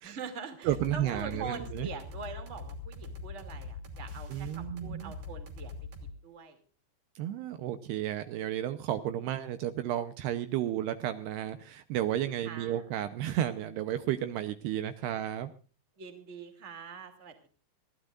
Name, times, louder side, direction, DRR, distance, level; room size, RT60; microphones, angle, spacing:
voice 1, 0.0-5.8 6.2-6.6 12.4-12.8 16.0-17.5, right 5 dB, 25° right, 6 dB, 1.8 m, -43 dB
sound 1, 0.6-6.1, left 3 dB, 60° right, 4.5 m, -42 dB
voice 2, 0.6-1.9 4.3-5.2 7.2-15.5, right 12 dB, 75° right, 10 dB, 2.7 m, -32 dB
24.0 x 15.5 x 2.5 m, 0.38 s
omnidirectional pair, 5.2 m